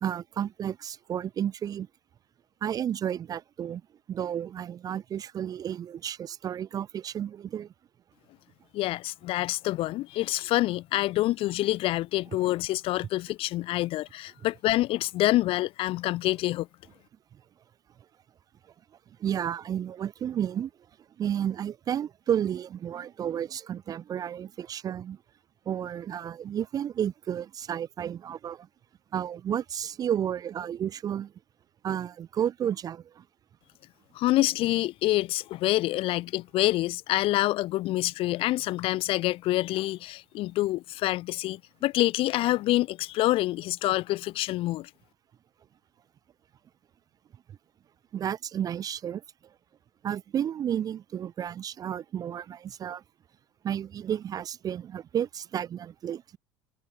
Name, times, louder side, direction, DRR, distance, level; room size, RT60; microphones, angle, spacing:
voice 1, 0.0-1.9 2.6-3.8 4.1-7.7 19.2-20.7 21.2-25.2 25.7-28.7 29.1-31.3 31.8-33.2 48.1-49.2 50.0-53.0 53.6-56.4, right 9 dB, 30° right, 0.4 m, -32 dB
voice 2, 8.7-16.7 34.2-44.9, left 16 dB, 50° left, 0.5 m, -27 dB
hypercardioid pair, 85°, 12 cm